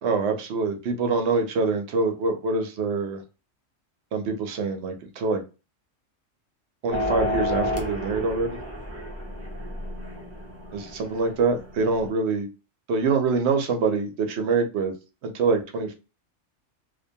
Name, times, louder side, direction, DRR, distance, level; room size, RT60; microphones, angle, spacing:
voice 1, 0.0-3.2 4.1-5.4 6.8-8.5 10.7-12.5 12.9-14.9 15.2-15.9, right 4 dB, 70° right, 5 dB, 0.8 m, -25 dB
sound 1, 6.9-12.1, left 1 dB, 20° right, 0.4 m, -31 dB
2.5 x 2.2 x 2.6 m, 0.30 s
omnidirectional pair, 1.3 m